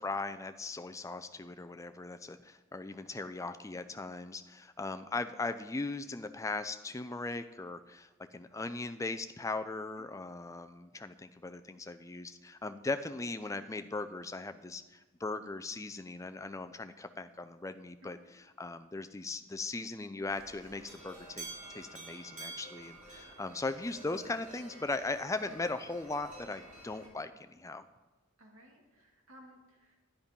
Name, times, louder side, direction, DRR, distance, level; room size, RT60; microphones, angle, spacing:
voice 1, 0.0-27.8, left 3 dB, 15° left, 9 dB, 0.4 m, -39 dB
voice 2, 18.0-18.3 28.4-30.0, equal, 75° right, -1 dB, 2.6 m, -58 dB
sound 1, 20.3-27.1, right 2 dB, 35° right, 4.0 m, -49 dB
10.0 x 9.6 x 5.3 m, 1.1 s
head